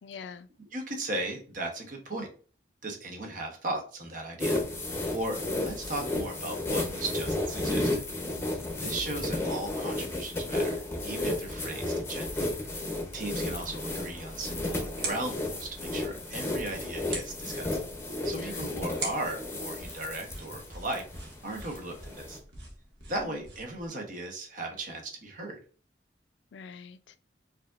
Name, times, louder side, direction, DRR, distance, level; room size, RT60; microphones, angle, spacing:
voice 1, 0.0-0.5 8.3-8.8 18.3-18.7 23.3-23.4 26.5-27.1, left 5 dB, 85° left, 0.3 m, -45 dB
voice 2, 0.7-2.3 2.8-4.6 5.1-8.0 8.8-12.5 13.1-17.8 18.2-21.0 21.4-22.4 23.1-25.6, right 2 dB, 50° right, 0.9 m, -37 dB
sound 1, 4.4-22.4, left 1 dB, 15° left, 0.7 m, -33 dB
sound 2, 14.9-23.9, right 2 dB, 70° right, 1.3 m, -44 dB
4.8 x 2.7 x 2.4 m
head